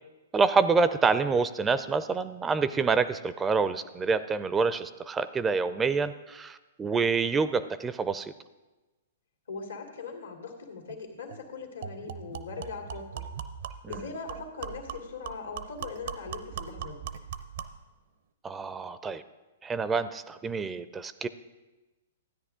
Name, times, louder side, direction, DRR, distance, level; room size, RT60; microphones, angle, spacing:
voice 1, 0.3-8.3 13.8-13.9 18.4-19.2 19.6-21.3, right 4 dB, 15° right, 14 dB, 0.4 m, -27 dB
voice 2, 9.5-13.3 13.9-17.1, left 4 dB, 90° left, 2 dB, 2.1 m, -40 dB
sound 1, 10.9-11.0 11.3-11.4 11.8-17.8, right 8 dB, 65° right, 0.6 m, -40 dB
13.0 x 9.5 x 3.7 m, 1.1 s
hypercardioid pair, 125°, 0 cm